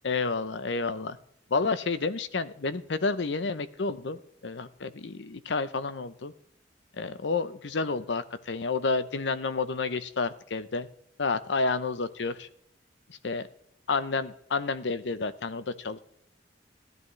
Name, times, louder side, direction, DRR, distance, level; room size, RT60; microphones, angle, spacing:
voice 1, 0.0-1.2 1.5-6.3 6.9-10.9 11.2-12.5 13.2-13.5 13.9-16.0, left 4 dB, 70° left, 13 dB, 0.7 m, -30 dB
15.0 x 10.5 x 3.2 m, 0.70 s
head